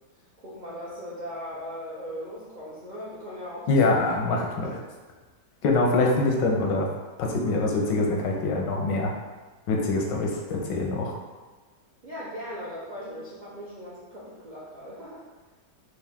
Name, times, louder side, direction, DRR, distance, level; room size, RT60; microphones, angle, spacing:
voice 1, 0.4-4.0 4.2-4.4 4.7-4.8 12.0-15.2, equal, 65° right, -8 dB, 0.4 m, -39 dB
voice 2, 3.7-4.8 5.6-6.9 7.2-9.1 9.7-11.1, left 2 dB, 85° left, 0 dB, 1.4 m, -24 dB
4.7 x 2.5 x 3.5 m, 1.3 s
omnidirectional pair, 1.9 m